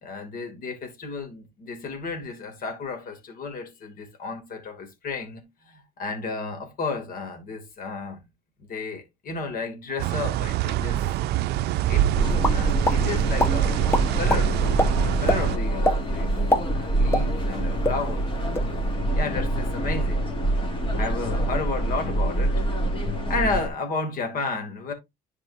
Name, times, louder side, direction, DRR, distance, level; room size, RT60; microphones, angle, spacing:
voice 1, 0.0-8.2 8.7-11.1 11.9-12.1 12.5-13.8 14.1-14.6 15.2-16.4 16.7-18.6 19.2-20.3 20.9-22.6 23.3-24.9, left 4 dB, 55° left, 2.6 m, -32 dB
sound 1, 10.0-15.6, right 13 dB, 75° right, 0.5 m, -25 dB
sound 2, 12.1-23.7, right 1 dB, 30° left, 2.8 m, -26 dB
sound 3, 12.4-13.0 13.4-13.5 13.9-14.4 14.8-14.9 15.3-15.4 15.8-16.0 16.3-17.6 17.8-18.0 18.4-18.7, left 1 dB, 15° left, 1.3 m, -22 dB
11.0 x 4.8 x 2.7 m
cardioid pair, 110°, 17 cm